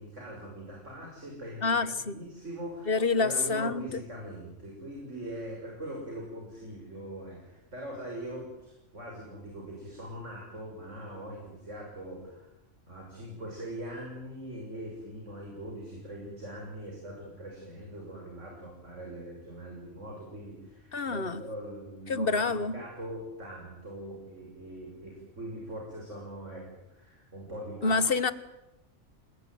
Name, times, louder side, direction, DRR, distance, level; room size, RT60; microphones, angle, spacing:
voice 1, 0.0-12.5 12.9-28.0, right 1 dB, 70° right, 6.7 m, -42 dB
voice 2, 1.6-2.2 2.9-3.8 20.9-21.4 22.1-22.8 27.8-28.3, left 4 dB, 50° left, 1.5 m, -27 dB
29.0 x 20.0 x 9.4 m
omnidirectional pair, 1.3 m